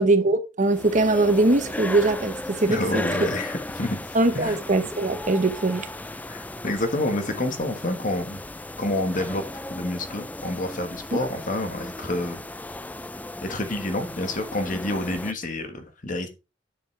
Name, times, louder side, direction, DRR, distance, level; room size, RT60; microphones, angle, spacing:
voice 1, 0.0-3.0 4.1-5.9 11.1-11.2, right 2 dB, 45° right, 1.0 m, -21 dB
sound 1, 0.6-15.3, left 1 dB, 10° left, 0.3 m, -36 dB
voice 2, 2.7-4.0 4.3-4.6 6.3-8.4 8.8-12.4 13.4-16.3, left 1 dB, 45° left, 1.3 m, -28 dB
9.3 x 7.1 x 3.2 m
head